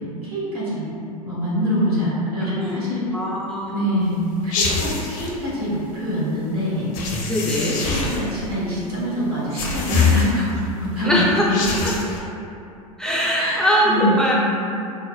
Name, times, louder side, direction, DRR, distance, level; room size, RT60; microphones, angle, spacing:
voice 1, 0.2-0.8 1.2-3.1 3.7-4.2 4.4-6.9 7.4-10.5 10.8-11.6 13.4-14.3, equal, 75° right, -8 dB, 1.2 m, -24 dB
voice 2, 3.1-4.0 7.3-7.8 11.0-11.4 11.8-11.9 13.0-14.3, equal, 5° left, -6 dB, 0.4 m, -22 dB
sound 1, 4.5-5.3 6.9-8.4 9.5-10.6 11.4-12.2, left 5 dB, 40° left, 0.6 m, -24 dB
4.6 x 2.0 x 2.2 m, 2.7 s
figure-of-eight pair, 85°, 19 cm